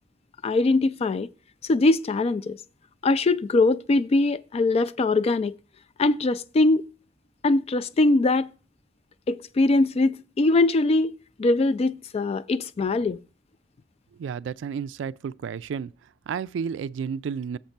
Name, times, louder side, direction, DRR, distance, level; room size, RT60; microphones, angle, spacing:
voice 1, 0.4-1.3 1.7-2.6 3.0-5.5 6.0-6.8 7.4-8.5 9.3-11.1 11.4-13.2, left 2 dB, 35° left, 0.3 m, -22 dB
voice 2, 14.2-15.9 16.3-17.6, right 6 dB, 70° right, 0.3 m, -31 dB
7.2 x 5.2 x 5.8 m
head